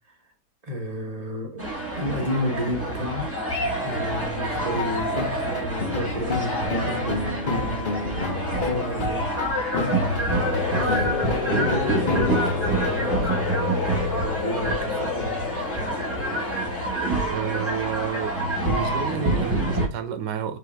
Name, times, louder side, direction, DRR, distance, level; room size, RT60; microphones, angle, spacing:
voice 1, 0.6-3.3 3.8-7.8 8.2-9.3 10.3-15.3, equal, 30° right, 0.9 m, -32 dB
sound 1, 1.6-19.9, right 1 dB, 10° right, 1.2 m, -27 dB
sound 2, 4.5-10.6 10.9-11.7 12.1-12.9, left 4 dB, 40° left, 0.9 m, -30 dB
sound 3, 10.3-16.9, left 8 dB, 80° left, 1.2 m, -31 dB
voice 2, 17.3-18.4 18.6-20.6, right 7 dB, 80° right, 1.4 m, -30 dB
6.0 x 2.7 x 3.3 m
omnidirectional pair, 1.8 m